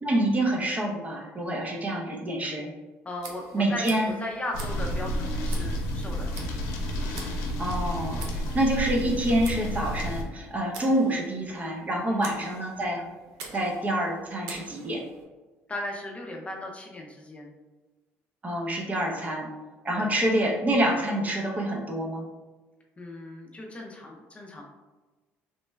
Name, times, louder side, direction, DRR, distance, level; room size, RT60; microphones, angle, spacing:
voice 1, 0.0-2.7 3.5-4.1 7.6-13.0 13.5-15.0 18.4-19.5 19.8-22.2, right 1 dB, 25° right, 0 dB, 0.7 m, -27 dB
voice 2, 3.0-6.3 8.2-8.5 12.1-12.5 15.7-17.5 19.1-19.5 19.9-20.1 23.0-24.6, left 1 dB, 20° left, 0 dB, 0.5 m, -37 dB
Tick, 3.2-15.2, right 4 dB, 85° right, 0.5 m, -47 dB
sound 1, 4.5-10.2, equal, 75° left, 0.6 m, -30 dB
3.1 x 2.1 x 3.1 m, 1.2 s
supercardioid pair, 90°, 6 cm